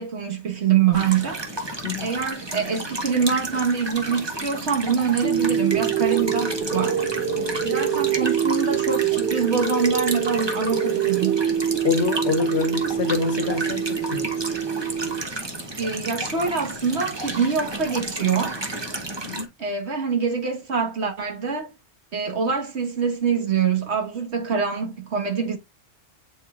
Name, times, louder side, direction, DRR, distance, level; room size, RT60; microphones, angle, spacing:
voice 1, 0.0-1.4 2.0-7.1 7.6-11.4 15.8-18.6 19.6-21.7 22.1-25.6, right 6 dB, 80° right, 1.7 m, -24 dB
sound 1, 0.9-19.5, right 2 dB, 25° right, 1.1 m, -32 dB
sound 2, 5.2-15.2, right 8 dB, 65° right, 1.1 m, -25 dB
voice 2, 11.8-13.8 14.1-14.3 19.2-19.5, left 7 dB, 85° left, 1.3 m, -26 dB
8.8 x 4.5 x 2.4 m
omnidirectional pair, 1.1 m